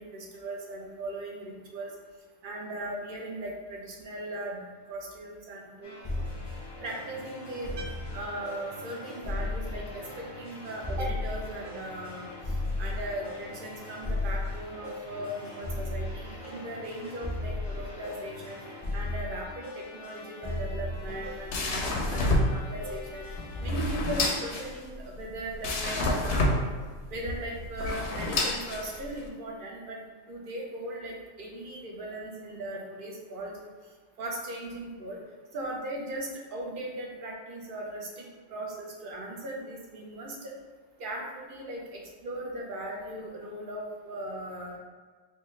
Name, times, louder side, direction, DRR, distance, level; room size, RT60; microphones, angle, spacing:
voice 1, 0.0-1.9 2.4-4.6 4.9-5.9 6.8-7.7 8.1-10.1 10.4-18.6 18.9-23.3 23.6-26.5 27.1-30.0 30.3-33.7 34.2-35.2 35.5-40.5 41.0-44.8, right 1 dB, 55° right, -1 dB, 0.7 m, -38 dB
sound 1, 5.8-24.3, left 2 dB, 25° left, 0.6 m, -36 dB
sound 2, 20.9-29.3, left 2 dB, 65° left, 0.8 m, -30 dB
4.3 x 2.3 x 3.1 m, 1.5 s
omnidirectional pair, 1.3 m